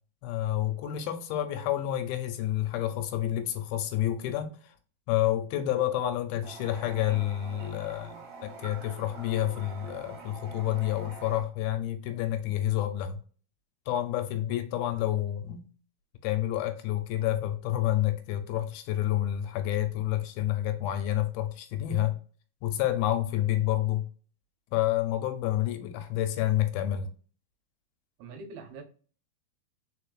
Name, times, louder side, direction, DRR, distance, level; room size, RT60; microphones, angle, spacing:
voice 1, 0.2-4.7 5.1-13.2 13.9-15.6 16.2-22.2 22.6-24.1 24.7-27.1, left 12 dB, 80° left, 2.4 m, -29 dB
Toilet flush, 6.4-11.4, right 4 dB, 55° right, 2.4 m, -46 dB
voice 2, 28.2-28.8, right 4 dB, 80° right, 2.8 m, -43 dB
5.1 x 4.3 x 2.3 m
omnidirectional pair, 4.4 m